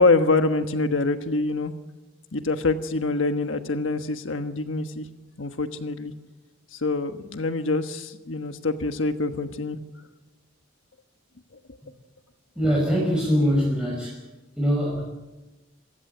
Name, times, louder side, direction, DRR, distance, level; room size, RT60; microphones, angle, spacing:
voice 1, 0.0-1.7 2.3-5.1 5.4-6.1 6.7-9.8, left 3 dB, 85° left, 8 dB, 1.3 m, -25 dB
voice 2, 12.6-14.2 14.6-15.0, equal, 5° right, -4 dB, 5.5 m, -22 dB
26.5 x 15.5 x 9.3 m, 1.1 s
head